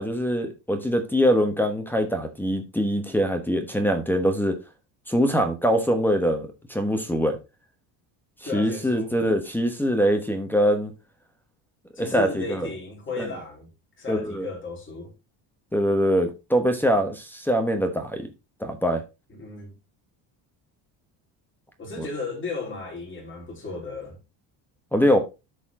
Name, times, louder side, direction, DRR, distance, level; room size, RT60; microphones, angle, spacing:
voice 1, 0.0-4.6 5.1-7.4 8.5-10.9 12.0-12.7 14.1-14.5 15.7-18.3 18.6-19.0 22.0-22.1 24.9-25.2, equal, 5° left, 1.1 m, -23 dB
voice 2, 8.5-9.2 12.0-13.7 14.0-15.1 19.3-19.7 21.8-24.2, left 3 dB, 25° left, 3.5 m, -35 dB
12.5 x 4.3 x 3.7 m
cardioid pair, 145°, 45 cm